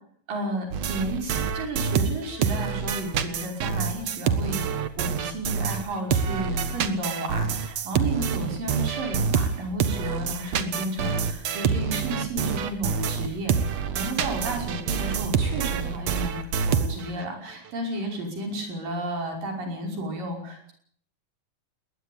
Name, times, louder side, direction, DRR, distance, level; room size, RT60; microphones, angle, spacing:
voice 1, 0.3-4.6 5.0-13.6 13.9-16.4 16.7-20.7, right 1 dB, 90° right, 3 dB, 7.3 m, -32 dB
sound 1, 0.7-5.8 6.1-17.2, right 7 dB, 60° right, 2.5 m, -27 dB
21.0 x 19.5 x 8.7 m, 0.62 s
omnidirectional pair, 3.8 m